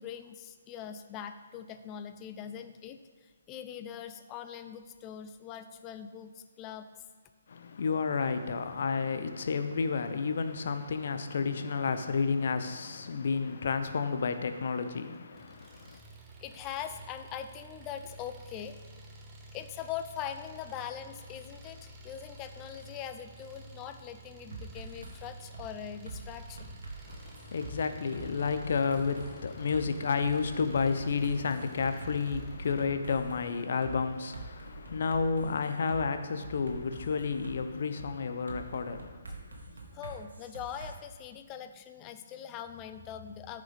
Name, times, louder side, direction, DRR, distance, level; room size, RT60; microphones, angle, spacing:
voice 1, 0.0-6.9 15.9-16.0 16.4-18.8 19.5-26.8 39.9-43.6, left 9 dB, 25° left, 0.6 m, -42 dB
voice 2, 7.5-16.0 27.1-39.7, left 5 dB, 55° left, 0.8 m, -31 dB
Engine, 15.3-32.9, right 2 dB, 20° right, 1.2 m, -51 dB
sound 1, 24.5-25.1 25.5-25.7 26.0-27.7 28.1-29.3 29.7-29.8 30.2-33.4 33.8-33.9 34.3-36.0 36.4-37.6 38.0-38.1 38.5-40.9, right 3 dB, 75° right, 1.8 m, -45 dB
14.0 x 6.6 x 3.6 m
figure-of-eight pair, 140°, 0 cm